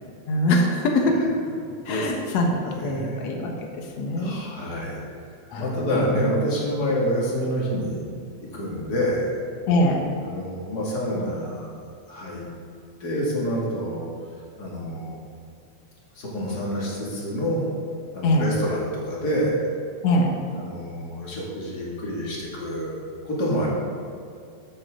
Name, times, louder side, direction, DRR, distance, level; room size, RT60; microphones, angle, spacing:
voice 1, 0.3-1.2 1.9-4.3 5.5-6.1 9.7-10.0 18.2-18.5 20.0-20.3, left 1 dB, 70° left, 1 dB, 2.5 m, -23 dB
voice 2, 1.8-2.4 2.7-3.2 4.2-5.0 5.6-8.0 8.4-9.3 10.2-11.7 12.1-12.4 13.0-14.1 14.6-15.2 16.1-17.6 18.1-19.6 20.5-23.0 23.2-23.7, equal, 35° left, -5 dB, 2.8 m, -27 dB
12.5 x 10.5 x 3.9 m, 2.4 s
omnidirectional pair, 3.3 m